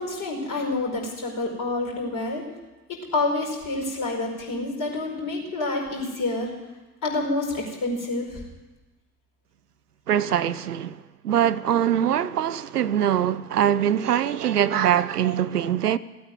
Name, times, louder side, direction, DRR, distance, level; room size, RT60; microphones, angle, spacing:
voice 1, 0.0-2.4 3.1-6.5 7.0-8.3, left 2 dB, 40° left, 5.2 m, -28 dB
voice 2, 10.1-11.0 11.2-16.0, right 10 dB, 85° right, 0.5 m, -23 dB
16.0 x 9.2 x 9.3 m
figure-of-eight pair, 65°, 45 cm